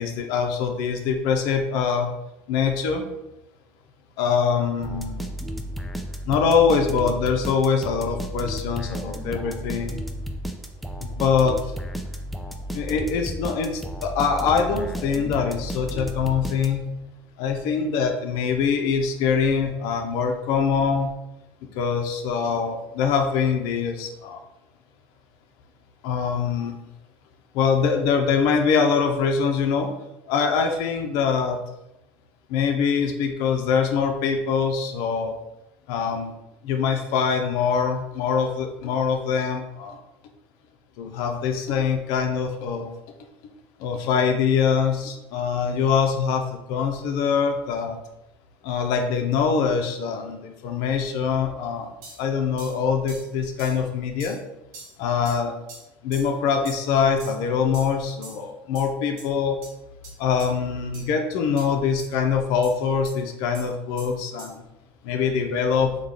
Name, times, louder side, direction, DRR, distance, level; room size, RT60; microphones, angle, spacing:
voice 1, 0.0-2.1 2.5-3.1 4.2-5.3 6.3-9.9 11.1-11.7 12.7-16.9 17.4-21.1 21.7-24.4 26.0-26.7 27.5-29.9 30.3-31.6 32.5-35.4 35.9-36.3 36.6-40.0 41.0-42.9 43.8-48.0 48.6-54.4 55.0-55.5 56.0-59.6 60.2-64.6 65.0-65.9, left 6 dB, 70° left, 4 dB, 0.5 m, -23 dB
sound 1, 4.8-17.0, equal, ahead, 0.3 m, -33 dB
sound 2, 52.0-52.2 52.6-52.8 53.1-53.3 53.6-53.8 54.2-54.4 54.7-54.9 55.3-55.4 55.7-55.8 56.1-56.3 56.7-56.9 57.2-57.4 57.7-57.9 58.2-58.4 58.7-58.9 59.2-59.3 59.6-59.7 60.0-60.1 60.4-60.5 60.9-61.0 61.6-61.7 62.0-62.1 62.6-62.7 63.0-63.1 63.5-63.7 64.0-64.1 64.4-64.5, right 3 dB, 75° right, 1.3 m, -42 dB
3.7 x 2.2 x 3.2 m, 0.89 s
supercardioid pair, 115°, 6 cm